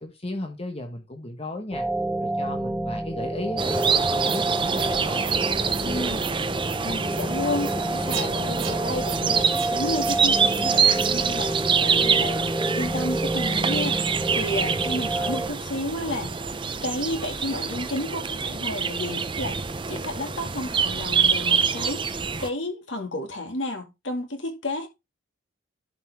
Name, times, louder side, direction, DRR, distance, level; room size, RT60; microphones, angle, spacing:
voice 1, 0.0-1.8 2.2-5.2, left 1 dB, 30° left, 1.3 m, -35 dB
sound 1, 1.7-15.5, right 1 dB, 5° right, 1.0 m, -29 dB
sound 2, 3.6-22.5, right 6 dB, 25° right, 0.6 m, -26 dB
sound 3, 3.8-3.9 4.2-4.4 4.7-4.9 5.2-5.4 5.7-5.9 6.2-6.4 6.6-6.8 7.1-7.3 7.6-7.7 8.1-8.3 8.6-8.8 9.0-9.2 9.5-9.7 10.0-10.2 10.5-10.6 11.0-11.1, right 13 dB, 85° right, 1.0 m, -37 dB
voice 2, 5.8-6.4 6.8-16.4 16.8-24.9, left 1 dB, 70° left, 2.2 m, -32 dB
11.5 x 5.5 x 3.5 m
head